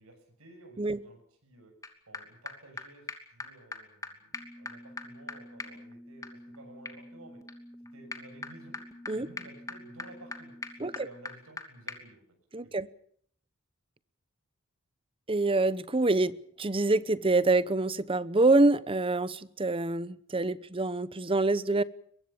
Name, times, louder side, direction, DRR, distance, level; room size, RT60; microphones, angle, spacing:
voice 1, 0.0-1.7 2.1-6.3 6.5-7.4 7.9-8.8 9.1-12.2 12.6-12.7, right 2 dB, 90° right, 4 dB, 6.8 m, -54 dB
sound 1, 1.8-1.9 2.1-2.2 2.5-2.6 2.8-2.9 3.1-3.2 3.4-3.5 3.7-3.8 4.0-4.1 4.3-11.6 11.9-12.0, left 2 dB, 15° left, 2.7 m, -42 dB
voice 2, 12.5-12.9 15.3-21.8, right 2 dB, 25° right, 17 dB, 0.9 m, -26 dB
22.5 x 22.5 x 7.1 m, 0.63 s
head